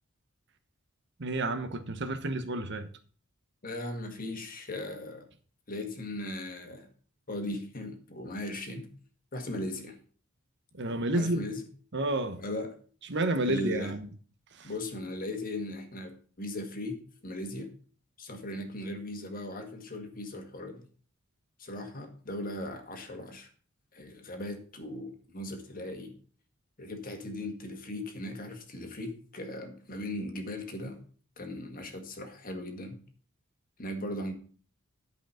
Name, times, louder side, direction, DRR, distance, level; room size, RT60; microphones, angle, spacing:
voice 1, 1.2-2.9 10.7-11.4 11.9-12.4 13.1-14.1 14.5-14.7, right 2 dB, 55° right, 1.1 m, -30 dB
voice 2, 3.6-5.3 5.7-6.9 7.3-8.9 9.3-10.0 11.1-11.6 12.4-12.8 13.4-14.0 14.6-17.7 18.2-20.8 21.6-23.5 23.9-26.1 26.8-31.0 31.4-33.0 33.8-34.3, left 1 dB, 40° left, 1.7 m, -38 dB
11.5 x 5.3 x 5.7 m
head